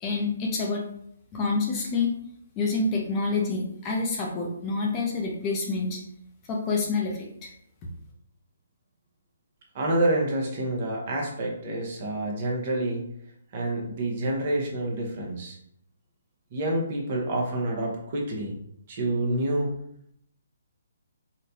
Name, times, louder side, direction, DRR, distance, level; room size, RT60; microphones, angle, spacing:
voice 1, 0.0-0.8 1.3-2.1 2.6-6.0 6.5-7.5, left 3 dB, 25° left, -1 dB, 0.6 m, -27 dB
voice 2, 9.7-13.0 13.5-15.6 16.5-18.5 18.9-19.7, right 1 dB, 45° right, -1 dB, 0.9 m, -28 dB
4.0 x 2.2 x 2.7 m, 0.70 s
hypercardioid pair, 145°, 0 cm